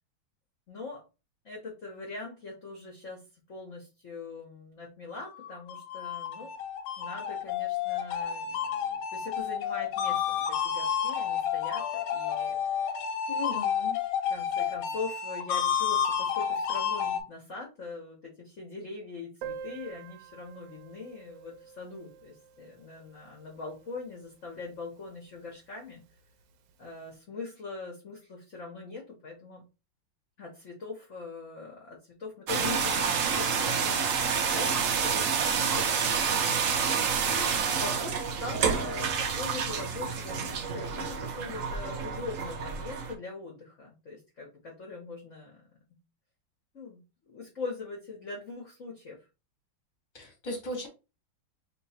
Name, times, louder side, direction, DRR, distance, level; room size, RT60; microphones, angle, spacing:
voice 1, 0.7-1.0 1.4-3.2 3.5-6.5 7.0-12.9 14.3-26.0 26.8-29.6 30.4-36.3 37.2-45.6 46.7-49.2, left 3 dB, 45° left, 1.2 m, -42 dB
sound 1, 5.4-17.2, left 8 dB, 85° left, 1.5 m, -30 dB
voice 2, 13.3-14.0 50.1-50.9, left 1 dB, 25° left, 1.3 m, -37 dB
Piano, 19.4-24.8 25.0-25.1 25.3-25.5 25.8-25.9 26.7-26.9, right 7 dB, 70° right, 1.2 m, -47 dB
sound 2, 32.5-43.1, right 6 dB, 90° right, 0.7 m, -28 dB
3.2 x 3.0 x 4.2 m
omnidirectional pair, 2.3 m